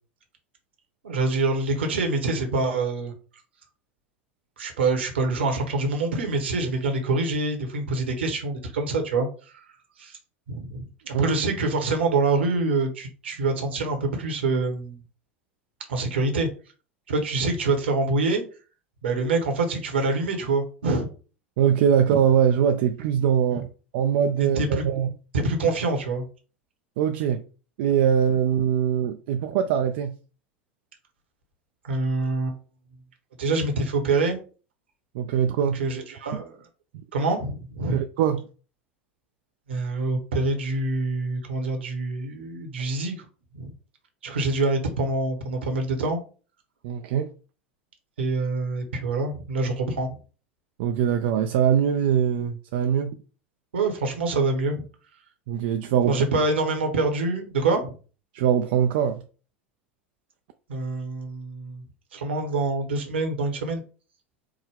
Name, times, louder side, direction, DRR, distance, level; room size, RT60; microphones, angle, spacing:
voice 1, 1.0-3.1 4.6-9.3 9.5-9.6 10.0-10.2 10.5-15.0 15.9-16.5 17.1-18.4 19.0-21.1 23.5-23.6 24.4-24.8 25.3-26.2 31.8-32.6 33.4-34.4 35.6-36.6 37.1-38.0 39.7-43.3 43.5-43.7 44.2-46.2 48.2-50.2 53.7-54.8 56.1-57.9 60.7-61.8 62.1-63.8, right 3 dB, 70° right, 1.0 m, -25 dB
voice 2, 21.6-23.7 23.9-25.1 27.0-27.4 27.8-30.2 35.1-35.8 36.3-36.4 37.9-38.4 46.8-47.3 50.8-53.2 55.5-56.2 58.3-59.2, right 8 dB, 55° right, 0.3 m, -22 dB
4.8 x 2.1 x 3.5 m
figure-of-eight pair, 80°, 6 cm